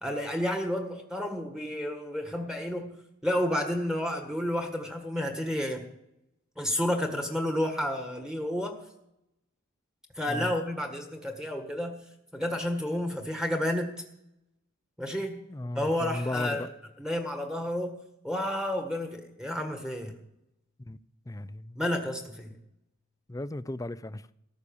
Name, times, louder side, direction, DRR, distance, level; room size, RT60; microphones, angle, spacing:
voice 1, 0.0-3.0 3.2-5.8 6.6-8.8 10.1-12.0 12.3-13.9 15.0-15.4 15.7-16.7 17.0-20.2 21.7-22.5, left 1 dB, 5° right, 1.5 m, -31 dB
voice 2, 15.5-16.7 20.9-21.0 21.3-21.8 23.3-24.3, left 1 dB, 15° left, 0.4 m, -35 dB
14.5 x 12.0 x 7.1 m
head